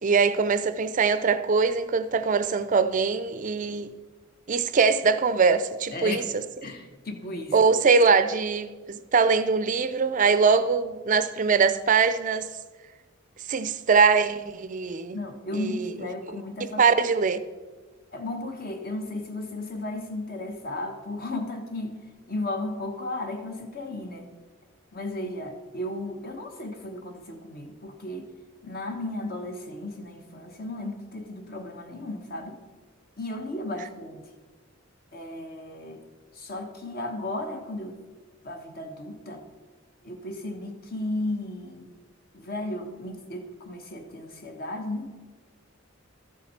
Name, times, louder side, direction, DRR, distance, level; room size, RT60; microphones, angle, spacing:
voice 1, 0.0-3.9 4.5-6.4 7.5-12.5 13.5-15.2 15.5-15.9 16.3-17.4, right 5 dB, 35° right, 0.4 m, -22 dB
voice 2, 5.9-6.2 6.6-7.5 15.1-16.8 18.1-21.9 22.3-24.3 24.9-28.3 28.6-32.6 33.2-34.2 35.1-36.0 36.4-38.0 38.4-39.4 40.0-41.9 42.3-45.1, left 2 dB, 45° left, 1.1 m, -34 dB
13.0 x 7.4 x 4.3 m
head